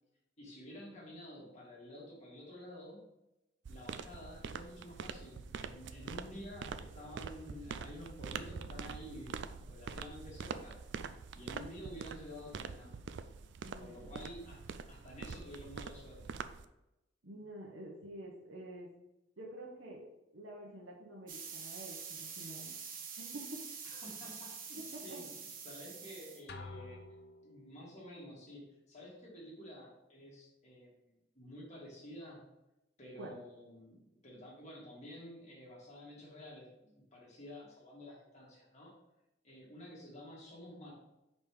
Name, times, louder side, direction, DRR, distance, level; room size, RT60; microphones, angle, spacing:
voice 1, 0.4-3.0 3.7-10.8 11.3-13.0 13.8-16.4 23.8-27.0 27.4-32.4 33.0-38.9 39.4-40.9, equal, 40° left, -4 dB, 2.0 m, -50 dB
sound 1, 3.7-16.6, right 5 dB, 65° right, 0.4 m, -45 dB
voice 2, 13.6-13.9 17.2-18.9 19.4-20.1 20.3-22.7 23.2-23.6 24.9-25.2 33.2-33.4, right 1 dB, 80° right, -3 dB, 1.1 m, -48 dB
sound 2, 21.3-26.4, right 6 dB, 50° right, 1.0 m, -46 dB
sound 3, 26.5-27.9, left 3 dB, 60° left, 0.5 m, -49 dB
5.3 x 4.3 x 4.8 m, 0.92 s
head